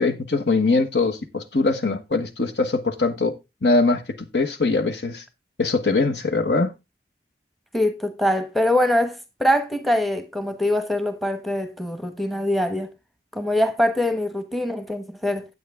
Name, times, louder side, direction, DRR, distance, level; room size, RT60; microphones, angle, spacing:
voice 1, 0.0-3.3 3.6-5.2 5.6-6.7, left 3 dB, 75° left, 1.3 m, -22 dB
voice 2, 7.7-12.9 13.3-15.4, left 1 dB, ahead, 1.0 m, -23 dB
9.2 x 8.4 x 3.5 m
head